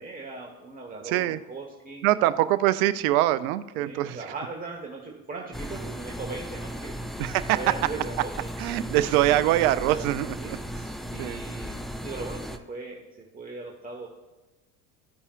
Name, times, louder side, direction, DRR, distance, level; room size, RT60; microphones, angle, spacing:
voice 1, 0.0-2.1 3.7-6.9 7.5-8.5 9.8-10.1 10.4-10.6 11.1-14.1, right 3 dB, 20° right, -1 dB, 1.3 m, -39 dB
voice 2, 1.0-1.4 2.0-4.2 7.2-7.6 8.6-10.8 11.2-11.4, right 14 dB, 70° right, 14 dB, 0.6 m, -24 dB
sound 1, 5.5-12.6, equal, ahead, 0.5 m, -36 dB
14.0 x 5.5 x 2.4 m, 1.1 s
hypercardioid pair, 70°, 45 cm